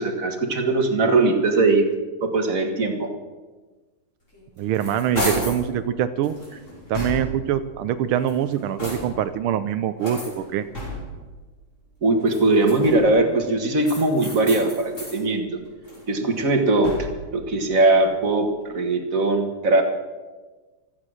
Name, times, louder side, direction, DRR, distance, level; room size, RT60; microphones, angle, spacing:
voice 1, 0.0-1.9 2.2-3.1 12.0-15.5 16.1-17.0 17.3-18.5 18.7-19.8, right 2 dB, 40° right, 5 dB, 1.9 m, -20 dB
sound 1, 4.3-5.7 6.2-7.5 8.1-9.3 10.0-11.2 12.1-13.2 13.8-15.2 15.6-17.3, equal, 35° left, 5.9 m, -33 dB
voice 2, 4.6-6.4 6.9-10.7 16.2-16.3, right 10 dB, 80° right, 11 dB, 1.5 m, -24 dB
16.0 x 13.5 x 6.3 m, 1.3 s
omnidirectional pair, 2.3 m